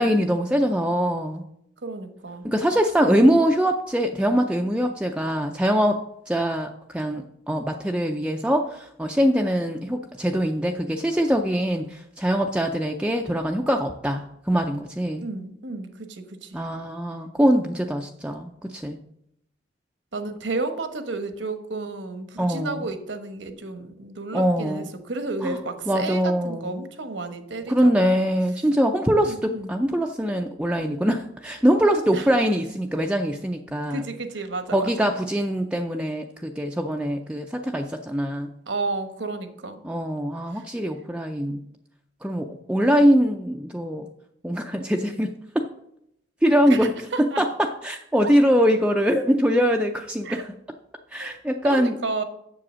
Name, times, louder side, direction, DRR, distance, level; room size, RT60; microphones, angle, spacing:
voice 1, 0.0-1.4 2.4-6.0 6.3-15.2 16.5-19.0 22.4-22.8 24.3-24.9 25.4-25.6 25.9-26.8 27.7-34.0 34.7-38.5 39.8-41.6 42.2-44.1 44.4-45.7 46.4-46.9 47.2-50.5 51.1-51.9, equal, 5° right, 3 dB, 0.4 m, -23 dB
voice 2, 1.8-2.4 3.1-3.3 15.2-16.6 20.1-28.2 28.5-28.7 29.2-29.8 32.1-32.3 33.9-35.1 38.7-39.8 40.5-40.7 46.7-47.4 50.2-50.4 51.2-51.3 51.6-52.2, right 3 dB, 75° right, 8 dB, 1.1 m, -32 dB
7.6 x 7.0 x 6.2 m, 0.76 s
head